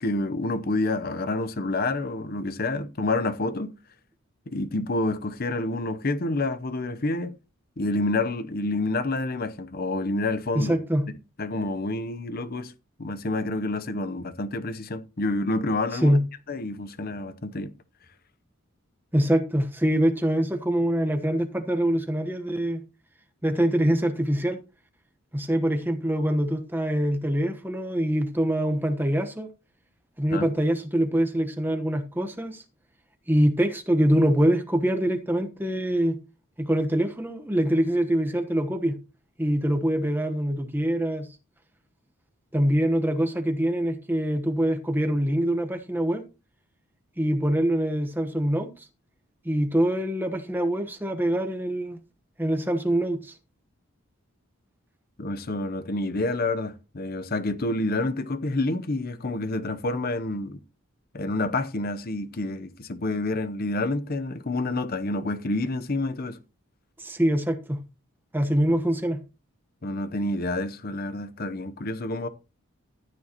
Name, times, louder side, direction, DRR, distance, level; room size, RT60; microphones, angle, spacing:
voice 1, 0.0-3.8 4.5-7.4 7.8-10.8 11.4-12.7 13.0-16.2 16.5-17.7 30.3-30.5 55.2-60.6 61.1-66.4 69.8-72.3, left 2 dB, 45° left, 0.8 m, -28 dB
voice 2, 10.5-11.1 16.0-16.2 19.1-22.8 23.4-24.6 25.3-29.5 30.2-32.6 33.3-36.2 36.6-39.0 39.4-41.3 42.5-46.2 47.2-48.9 49.4-52.0 52.4-53.3 67.0-67.8 68.3-69.2, right 1 dB, 10° right, 1.1 m, -24 dB
14.0 x 9.4 x 2.9 m
head